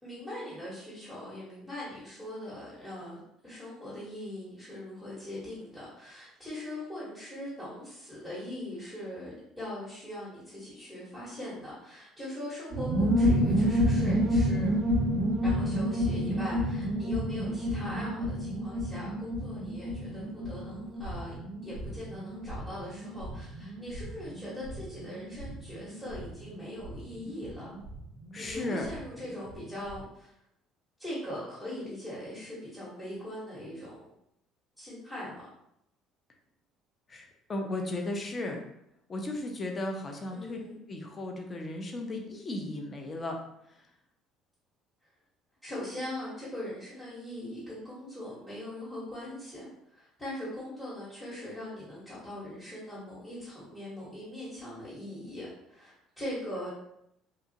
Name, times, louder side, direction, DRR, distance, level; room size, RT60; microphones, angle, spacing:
voice 1, 0.0-14.7 15.4-21.3 21.6-27.7 28.4-30.3 31.0-34.0 34.8-35.4 40.3-40.8 45.6-56.7, left 1 dB, 5° left, -10 dB, 1.1 m, -41 dB
sound 1, 12.7-29.0 29.3-29.4 29.6-30.0, equal, 55° right, 0.4 m, -30 dB
voice 2, 28.3-28.9 37.1-38.6 39.1-40.6 40.9-43.4, left 2 dB, 30° left, 2 dB, 0.5 m, -35 dB
2.9 x 2.3 x 2.7 m, 0.78 s
cardioid pair, 115°, 0 cm